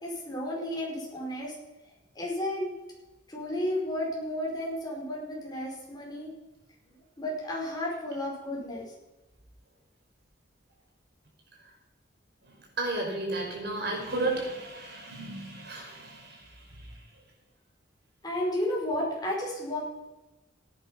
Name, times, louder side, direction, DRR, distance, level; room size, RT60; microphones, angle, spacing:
voice 1, 0.0-1.5 2.1-2.7 3.3-6.3 7.2-8.9 18.2-19.8, left 1 dB, 20° left, -3 dB, 4.9 m, -32 dB
voice 2, 12.5-17.0, right 2 dB, 60° right, 0 dB, 5.1 m, -34 dB
16.5 x 9.6 x 5.7 m, 1.0 s
head